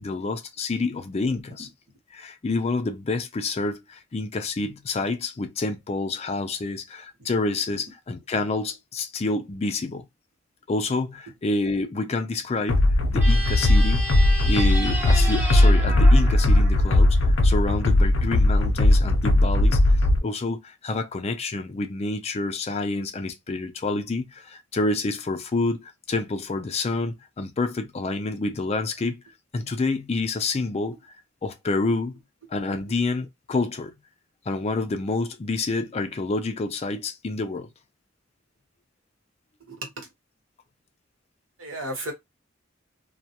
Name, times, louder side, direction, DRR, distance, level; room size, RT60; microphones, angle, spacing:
voice 1, 0.0-1.7 2.1-10.1 10.7-12.8 13.1-14.1 14.5-29.2 29.5-31.2 31.4-32.2 32.5-33.9 34.5-37.7, left 3 dB, 30° left, 0.4 m, -28 dB
sound 1, 12.7-20.2, left 1 dB, 85° left, 0.6 m, -18 dB
sound 2, 13.1-17.6, right 1 dB, 10° right, 0.7 m, -33 dB
voice 2, 39.7-40.1 41.6-42.1, right 1 dB, 80° right, 1.1 m, -33 dB
2.3 x 2.2 x 2.8 m
head